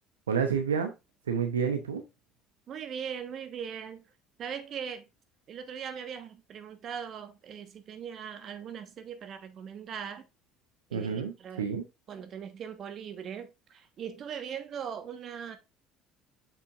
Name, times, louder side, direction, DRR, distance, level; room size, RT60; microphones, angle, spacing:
voice 1, 0.3-0.9 1.3-2.0 10.9-11.8, right 6 dB, 85° right, 0.7 m, -29 dB
voice 2, 2.7-4.0 4.4-5.1 5.5-10.2 10.9-11.6 12.1-15.6, right 7 dB, 50° right, 1.2 m, -40 dB
6.8 x 5.7 x 2.4 m
hypercardioid pair, 60°, 0 cm